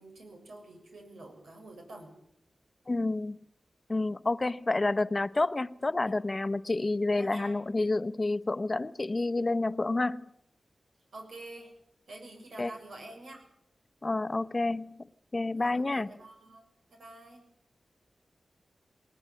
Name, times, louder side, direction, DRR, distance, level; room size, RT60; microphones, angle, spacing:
voice 1, 0.0-2.1 6.0-6.1 7.1-7.6 11.1-11.7 12.1-13.5 15.5-17.4, right 2 dB, 85° right, 6.8 m, -48 dB
voice 2, 2.9-3.4 3.9-10.3 12.6-12.7 14.0-15.0 15.3-16.1, left 2 dB, 35° left, 0.8 m, -29 dB
19.5 x 19.5 x 7.6 m
cardioid pair, 65°, 0 cm